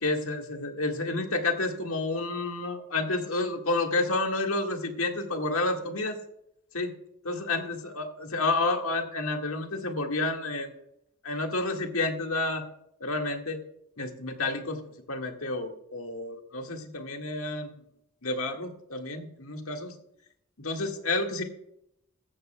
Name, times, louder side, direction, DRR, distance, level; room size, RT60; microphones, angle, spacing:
voice 1, 0.0-6.2 6.7-6.9 7.2-10.7 11.2-12.6 13.0-13.6 14.0-14.8 15.1-17.7 18.2-19.9 20.6-21.4, left 2 dB, 65° left, 3 dB, 1.7 m, -30 dB
14.5 x 13.5 x 2.2 m, 0.73 s
head